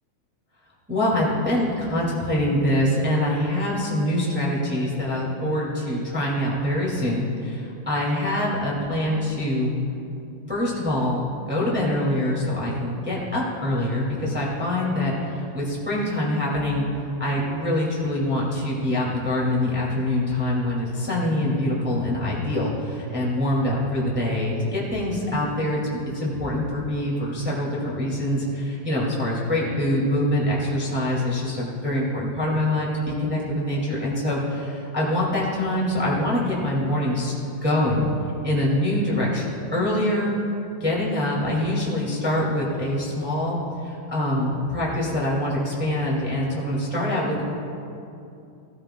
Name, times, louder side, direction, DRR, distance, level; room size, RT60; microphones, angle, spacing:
voice 1, 0.9-9.7 10.5-16.8 17.2-38.1 38.4-40.3 40.8-47.4, left 1 dB, 15° right, -6 dB, 0.4 m, -24 dB
17.0 x 13.5 x 2.2 m, 2.7 s
omnidirectional pair, 4.5 m